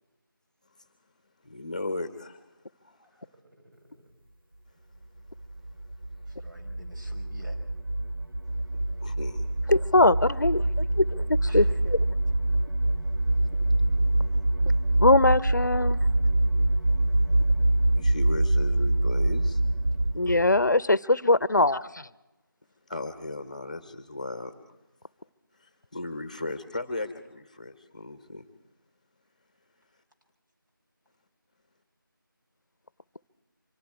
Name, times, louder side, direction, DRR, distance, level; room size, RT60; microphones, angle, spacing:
voice 1, 1.4-2.4 2.8-3.1 9.0-9.5 17.9-19.6 22.9-24.5 25.6-28.4, left 2 dB, 20° left, 10 dB, 0.9 m, -36 dB
voice 2, 3.4-4.1 6.4-7.6 11.4-11.8, equal, 60° right, 2 dB, 4.9 m, -49 dB
sound 1, 5.4-20.7, right 1 dB, 80° right, 1.1 m, -25 dB
voice 3, 9.7-12.0 15.0-16.0 20.1-21.8, left 2 dB, 55° left, 19 dB, 0.6 m, -22 dB
26.0 x 24.5 x 4.7 m, 0.99 s
figure-of-eight pair, 170°, 12 cm